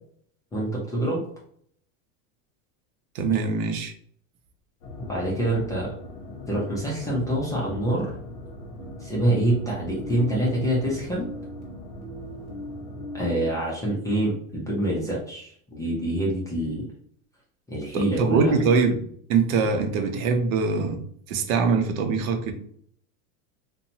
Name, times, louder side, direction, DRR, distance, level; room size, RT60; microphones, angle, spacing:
voice 1, 0.5-1.2 5.0-5.9 6.5-8.1 9.0-11.3 13.1-16.8 17.7-18.6, right 1 dB, 10° left, -5 dB, 0.4 m, -26 dB
voice 2, 3.1-3.9 17.9-19.0 19.3-21.0 21.3-22.5, right 5 dB, 70° right, 6 dB, 0.7 m, -23 dB
sound 1, 4.8-13.2, left 1 dB, 40° left, 0.8 m, -40 dB
sound 2, 8.8-13.9, equal, 40° right, 0.9 m, -41 dB
2.7 x 2.2 x 2.7 m, 0.62 s
supercardioid pair, 140°, 42 cm